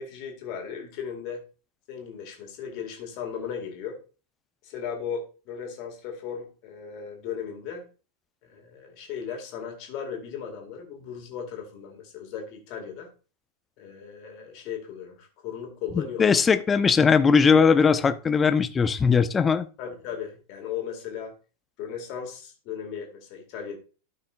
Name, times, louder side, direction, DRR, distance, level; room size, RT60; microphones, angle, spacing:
voice 1, 0.0-1.4 1.9-4.0 4.6-7.9 8.4-13.1 13.8-16.4 17.9-18.0 19.8-21.4 21.8-23.8, left 7 dB, 45° left, 2 dB, 2.1 m, -36 dB
voice 2, 16.2-19.7, left 5 dB, 20° left, 12 dB, 0.6 m, -19 dB
12.5 x 5.8 x 2.5 m, 0.34 s
figure-of-eight pair, 90°, 0 cm